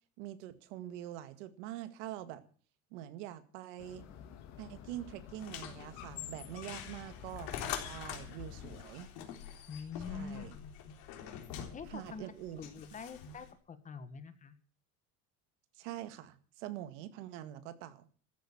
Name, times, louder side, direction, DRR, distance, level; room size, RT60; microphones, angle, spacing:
voice 1, 0.2-2.4 2.9-4.1 4.6-9.1 10.1-10.6 11.9-12.6 13.3-13.4 15.7-18.1, right 13 dB, 90° right, 2.0 m, -45 dB
sound 1, 3.8-8.8, left 9 dB, 50° left, 2.7 m, -51 dB
sound 2, 5.4-13.5, left 10 dB, 70° left, 3.7 m, -45 dB
voice 2, 9.7-10.4 11.4-11.5 11.7-12.3 12.6-14.6, left 5 dB, 20° left, 1.5 m, -45 dB
14.0 x 13.0 x 7.2 m
cardioid pair, 160°, 35 cm